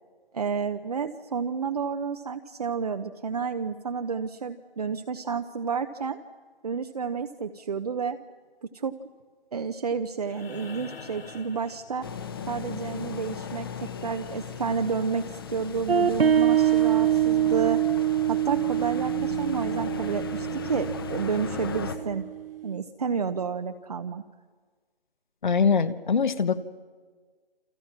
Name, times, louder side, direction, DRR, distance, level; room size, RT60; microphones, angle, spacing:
voice 1, 0.3-6.2 6.6-8.2 8.6-8.9 9.5-12.1 12.5-17.8 18.3-22.2 22.6-24.2, right 6 dB, 40° right, 7 dB, 0.9 m, -30 dB
sound 1, 10.2-12.5 14.4-14.5, left 4 dB, 75° left, 3.0 m, -44 dB
sound 2, 12.0-22.0, left 6 dB, 25° left, 1.2 m, -37 dB
sound 3, 15.9-22.8, right 10 dB, 70° right, 1.1 m, -25 dB
voice 2, 25.4-26.6, left 5 dB, 50° left, 14 dB, 1.4 m, -23 dB
29.0 x 26.5 x 6.0 m, 1.5 s
hypercardioid pair, 170°, 30 cm